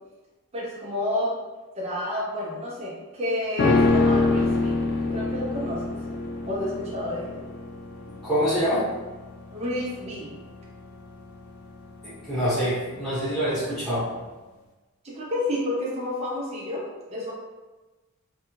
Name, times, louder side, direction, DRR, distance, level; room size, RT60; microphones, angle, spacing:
voice 1, 0.5-1.3 1.8-4.7 5.1-5.9 6.4-7.4 9.5-10.4 15.0-17.3, left 1 dB, 30° right, -5 dB, 0.6 m, -30 dB
sound 1, 3.6-13.0 13.3-13.4, left 3 dB, 50° left, 0.3 m, -26 dB
voice 2, 8.1-8.9 12.0-14.1, equal, 5° left, -13 dB, 1.0 m, -25 dB
2.6 x 2.2 x 3.0 m, 1.2 s
head